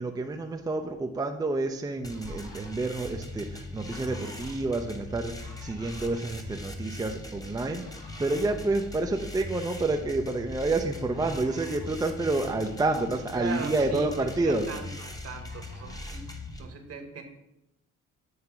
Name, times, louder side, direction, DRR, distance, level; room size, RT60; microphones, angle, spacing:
voice 1, 0.0-14.7, right 2 dB, 15° right, 4 dB, 0.5 m, -29 dB
Fowl, 1.4-4.8 5.0-6.6 7.5-9.6 10.1-10.3 10.9-12.0 12.6-12.7 13.0-13.8 14.3-15.0 15.5-16.2, left 1 dB, 75° left, 2.5 m, -52 dB
sound 1, 2.0-16.6, left 1 dB, 10° left, 0.9 m, -40 dB
voice 2, 13.3-14.1 14.4-16.3 16.6-17.2, right 4 dB, 50° right, 5 dB, 1.2 m, -39 dB
7.9 x 2.8 x 5.7 m, 0.86 s
cardioid pair, 90°, 30 cm